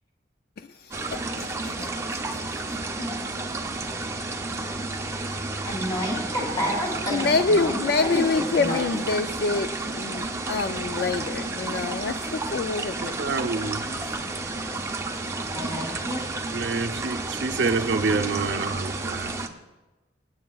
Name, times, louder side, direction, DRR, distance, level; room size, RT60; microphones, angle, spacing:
voice 1, 0.6-2.4 7.1-13.2 13.5-14.1, left 4 dB, 55° left, 0.3 m, -27 dB
sound 1, 0.9-19.5, right 2 dB, 15° right, 0.5 m, -31 dB
voice 2, 5.6-8.9 15.5-16.5, equal, 20° left, 3.0 m, -30 dB
voice 3, 13.0-13.9 16.5-19.4, right 4 dB, 70° right, 0.6 m, -27 dB
23.5 x 8.7 x 2.3 m
head